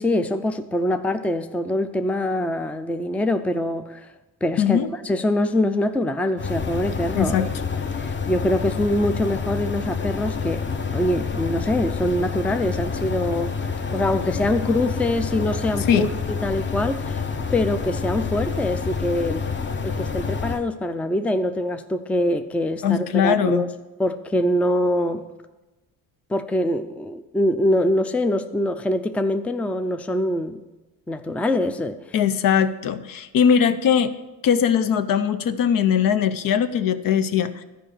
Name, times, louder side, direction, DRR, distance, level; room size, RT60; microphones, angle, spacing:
voice 1, 0.0-4.1 4.4-4.8 5.0-7.5 8.0-10.7 10.9-17.2 17.5-19.5 19.8-23.7 24.0-25.3 26.3-30.6 31.1-32.0, left 1 dB, 5° left, 0.4 m, -24 dB
voice 2, 4.6-4.9 7.1-7.5 15.9-16.1 22.8-23.6 32.1-34.1 34.4-37.6, left 8 dB, 60° left, 0.7 m, -20 dB
sound 1, 6.4-20.6, left 5 dB, 30° left, 0.8 m, -28 dB
12.5 x 5.0 x 6.7 m
cardioid pair, 90°, 37 cm